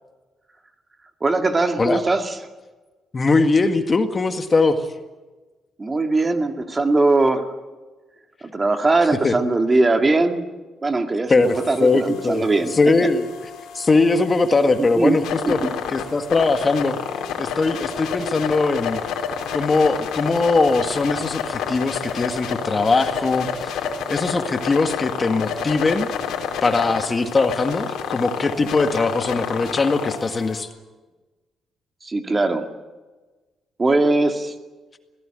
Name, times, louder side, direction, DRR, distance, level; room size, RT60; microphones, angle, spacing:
voice 1, 1.2-2.3 5.8-7.5 8.4-10.5 10.8-12.7 15.0-15.7 32.0-32.6 33.8-34.5, right 2 dB, 25° right, 6 dB, 2.1 m, -20 dB
voice 2, 3.1-4.9 9.2-9.3 11.3-12.4 12.7-13.3 13.7-15.6 15.9-17.0 17.4-19.0 19.5-23.8 24.1-26.1 26.6-30.7, left 3 dB, 30° left, 7 dB, 1.8 m, -20 dB
sound 1, 11.4-30.6, left 7 dB, 85° left, 3.3 m, -30 dB
21.5 x 17.0 x 9.0 m, 1.2 s
cardioid pair, 90°, 0 cm